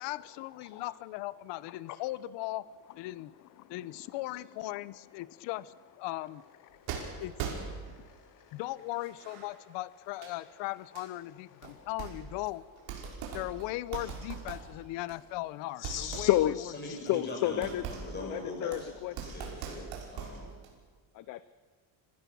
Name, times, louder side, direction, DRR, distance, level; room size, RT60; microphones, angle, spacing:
voice 1, 0.0-2.7 3.0-3.3 3.7-6.4 7.2-7.3 8.5-12.7 13.3-17.0, left 17 dB, 60° left, 18 dB, 0.9 m, -38 dB
sound 1, 6.9-8.1 8.8-9.5 10.1-10.3 11.0-11.1 11.6-12.5 12.8-15.4 15.8-20.8, right 6 dB, 60° right, 5.7 m, -41 dB
voice 2, 7.8-8.6 15.8-17.8 18.3-19.1 19.4-19.5 21.1-21.4, left 14 dB, 40° left, 14 dB, 0.6 m, -32 dB
voice 3, 16.7-20.5, left 1 dB, 20° left, 0 dB, 7.7 m, -41 dB
25.5 x 16.5 x 7.2 m, 1.5 s
cardioid pair, 135°, 49 cm